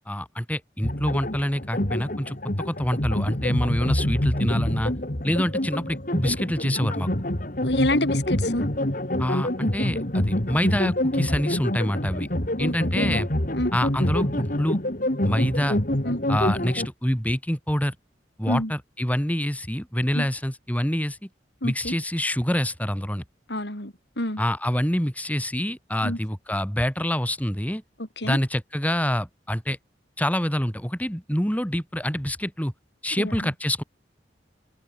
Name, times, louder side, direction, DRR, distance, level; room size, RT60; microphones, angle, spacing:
voice 1, 0.1-2.4 2.6-4.9 5.2-7.1 9.2-12.3 12.6-13.3 13.7-14.8 15.3-15.8 16.3-17.9 18.4-21.2 21.6-23.2 24.4-27.8 28.2-29.8 30.2-32.7 33.0-33.8, equal, 10° left, 5.6 m, -26 dB
sound 1, 0.8-16.9, left 1 dB, 50° left, 2.9 m, -26 dB
voice 2, 7.6-8.7 12.6-13.2 13.5-13.7 16.0-16.2 18.5-18.7 20.1-20.3 21.6-21.9 23.5-24.4 26.0-26.2 28.2-28.4 33.2-33.4, left 1 dB, 70° left, 6.9 m, -27 dB
head